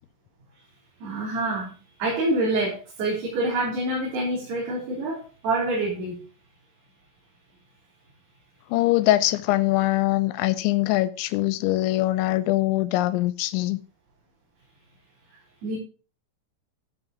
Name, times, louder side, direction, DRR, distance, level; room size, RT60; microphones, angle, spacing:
voice 1, 1.0-1.7 2.0-6.2 15.6-15.8, right 2 dB, 65° right, 5.8 m, -26 dB
voice 2, 8.7-13.8, left 16 dB, 85° left, 3.0 m, -23 dB
14.5 x 5.9 x 5.0 m
omnidirectional pair, 5.2 m